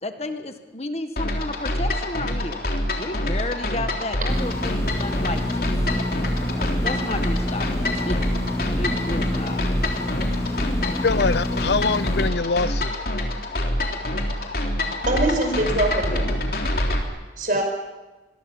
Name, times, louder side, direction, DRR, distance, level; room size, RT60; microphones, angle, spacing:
voice 1, 0.0-2.6 3.0-6.1 6.5-8.2 8.8-9.6, left 2 dB, 35° left, 7 dB, 1.6 m, -32 dB
sound 1, 1.2-17.0, left 1 dB, 55° left, 3.6 m, -26 dB
sound 2, 4.3-12.3, left 1 dB, 15° left, 1.8 m, -28 dB
voice 2, 10.9-12.9, left 4 dB, 75° left, 17 dB, 0.7 m, -24 dB
voice 3, 13.6-14.1 15.1-16.3 17.4-17.6, right 2 dB, 50° right, 4 dB, 5.9 m, -24 dB
26.5 x 21.5 x 7.3 m, 1.1 s
head